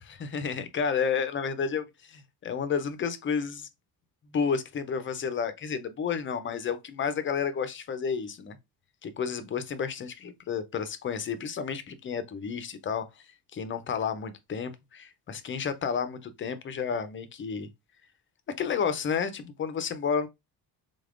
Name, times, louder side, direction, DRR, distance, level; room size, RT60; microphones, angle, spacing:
voice 1, 0.2-3.7 4.3-8.6 9.0-13.0 13.5-17.7 18.6-20.3, left 6 dB, 30° left, 0.4 m, -31 dB
3.6 x 3.4 x 2.4 m
cardioid pair, 165°, 40 cm